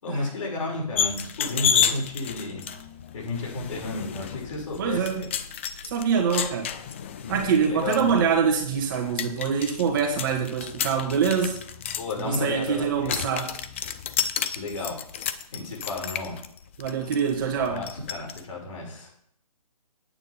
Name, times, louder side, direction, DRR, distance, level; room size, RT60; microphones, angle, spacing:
voice 1, 0.0-2.6 3.1-5.3 7.1-8.0 12.0-13.2 14.5-16.4 17.5-19.1, left 2 dB, 50° left, -2 dB, 5.9 m, -33 dB
sound 1, 1.0-18.4, left 8 dB, 20° left, 0.4 m, -31 dB
voice 2, 4.8-5.3 5.9-6.7 7.3-11.6 12.2-13.5 16.8-17.9, right 6 dB, 30° right, 2 dB, 1.6 m, -25 dB
8.9 x 8.8 x 5.7 m, 0.66 s
figure-of-eight pair, 150°, 20 cm